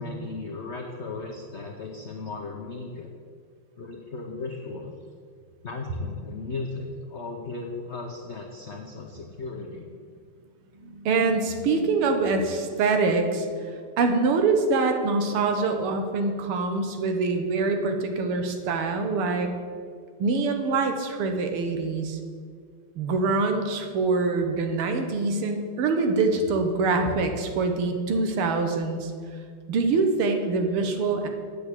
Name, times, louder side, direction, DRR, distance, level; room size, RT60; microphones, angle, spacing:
voice 1, 0.0-3.1 3.8-4.9 5.6-9.9, left 3 dB, 70° left, 1 dB, 0.6 m, -36 dB
voice 2, 10.9-13.5 14.0-19.5 20.2-22.2 23.0-29.1 29.7-31.3, right 3 dB, 80° right, 5 dB, 1.9 m, -24 dB
8.5 x 6.3 x 8.2 m, 2.1 s
omnidirectional pair, 2.4 m